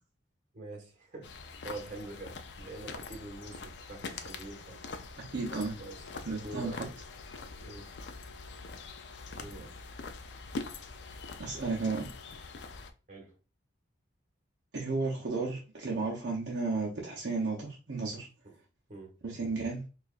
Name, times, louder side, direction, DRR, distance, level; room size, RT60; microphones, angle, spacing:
voice 1, 0.5-4.8 5.8-6.8 7.6-7.9 9.3-9.7 13.1-13.3 18.9-19.1, right 2 dB, 40° right, 1.4 m, -45 dB
sound 1, 1.2-12.9, left 4 dB, 65° left, 0.5 m, -44 dB
voice 2, 5.3-5.8 6.3-6.9 11.4-12.1 14.7-18.3 19.2-19.8, right 3 dB, 65° right, 0.8 m, -33 dB
4.5 x 2.5 x 2.4 m
head